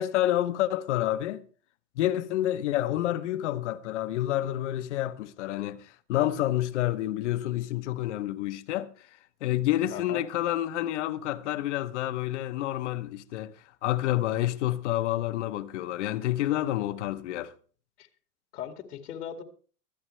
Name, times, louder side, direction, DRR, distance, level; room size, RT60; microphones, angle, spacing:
voice 1, 0.0-1.4 2.0-9.1 9.4-13.5 13.8-17.5, left 14 dB, 50° left, 0.9 m, -29 dB
voice 2, 9.9-10.2 18.0-18.1 18.5-19.4, left 9 dB, 80° left, 2.4 m, -38 dB
24.0 x 8.6 x 3.2 m
supercardioid pair, 170°, 45 cm